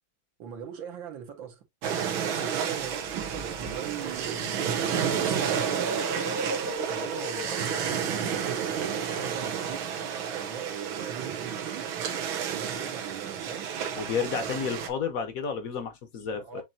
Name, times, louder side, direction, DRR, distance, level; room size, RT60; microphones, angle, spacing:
voice 1, 0.4-1.6 2.2-6.1 6.9-11.9 12.5-13.7 16.4-16.6, right 8 dB, 75° right, 2.1 m, -40 dB
sound 1, 1.8-14.9, right 8 dB, 90° right, 1.7 m, -31 dB
sound 2, 2.8-9.4, right 2 dB, 40° right, 0.8 m, -37 dB
voice 2, 14.0-16.6, left 6 dB, 55° left, 1.1 m, -31 dB
7.2 x 2.8 x 2.6 m
omnidirectional pair, 2.1 m